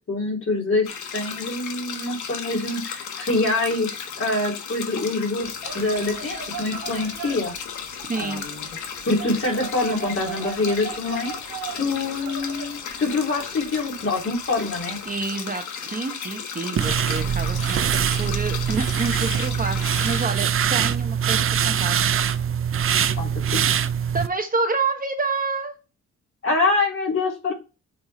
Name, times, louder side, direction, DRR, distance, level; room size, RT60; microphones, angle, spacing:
voice 1, 0.1-7.5 8.1-8.7 9.1-15.0 23.2-23.6 26.4-27.5, left 3 dB, 45° left, -2 dB, 3.3 m, -25 dB
sound 1, 0.8-20.3, left 7 dB, 80° left, 1.3 m, -35 dB
sound 2, 5.4-15.2, right 8 dB, 70° right, 1.3 m, -39 dB
voice 2, 8.1-8.4 15.1-19.8 20.0-22.0 24.1-25.8, right 4 dB, 30° right, 6 dB, 1.0 m, -28 dB
sound 3, 16.8-24.3, right 8 dB, 45° right, 0.6 m, -23 dB
7.3 x 3.7 x 4.2 m, 0.30 s
cardioid pair, 90°, 30 cm